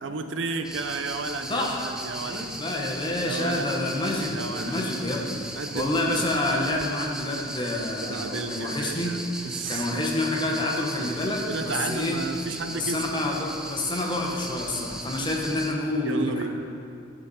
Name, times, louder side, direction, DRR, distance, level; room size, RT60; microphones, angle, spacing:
voice 1, 0.0-2.5 3.2-3.8 4.3-4.8 5.6-6.3 8.0-10.1 11.0-11.1 11.5-13.0 16.0-16.5, right 4 dB, 80° right, 7 dB, 0.6 m, -33 dB
sound 1, 0.6-15.7, right 1 dB, 5° right, 0.5 m, -37 dB
voice 2, 1.5-1.9 2.2-9.1 9.7-12.2 12.7-16.5, left 1 dB, 25° left, -1 dB, 1.1 m, -28 dB
11.0 x 7.0 x 4.2 m, 2.5 s
head